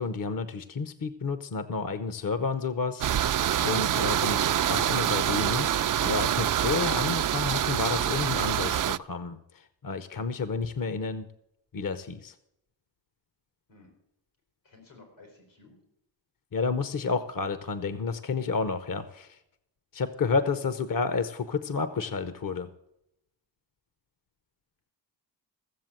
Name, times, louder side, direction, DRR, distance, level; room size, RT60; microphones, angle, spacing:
voice 1, 0.0-3.1 3.6-11.3 11.7-12.3 16.5-19.4 19.9-22.7, left 4 dB, 50° left, 12 dB, 0.9 m, -30 dB
sound 1, 3.0-9.0, right 10 dB, 50° right, 0.4 m, -26 dB
voice 2, 14.6-15.8 20.4-20.5, left 3 dB, 90° left, 3 dB, 4.3 m, -53 dB
15.0 x 7.3 x 7.6 m, 0.83 s
cardioid pair, 45°, 45 cm